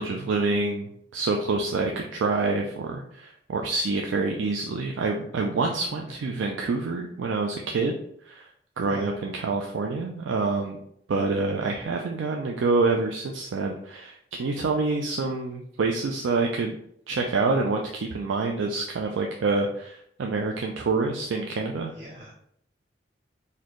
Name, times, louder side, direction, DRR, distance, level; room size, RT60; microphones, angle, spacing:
voice 1, 0.0-7.9 8.3-8.5 8.8-10.8 11.1-16.8 17.1-21.9, right 3 dB, 90° right, 1 dB, 0.4 m, -27 dB
voice 2, 5.9-6.2 8.9-9.1 22.0-22.3, equal, 30° right, -4 dB, 0.7 m, -41 dB
4.1 x 2.6 x 3.0 m, 0.69 s
head